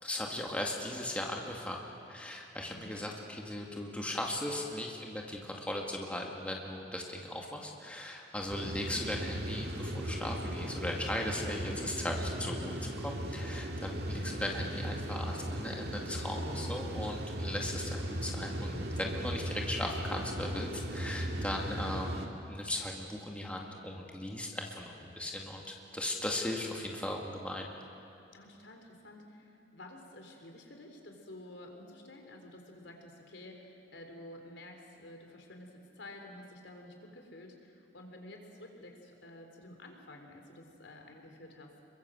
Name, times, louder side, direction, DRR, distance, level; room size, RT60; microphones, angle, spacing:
voice 1, 0.0-27.7, left 1 dB, 5° left, 0 dB, 2.1 m, -38 dB
voice 2, 2.7-3.0 28.3-41.8, left 1 dB, 80° left, 3 dB, 3.8 m, -51 dB
sound 1, 8.5-22.3, right 1 dB, 60° right, 2.1 m, -37 dB
28.0 x 22.5 x 7.8 m, 2.6 s
head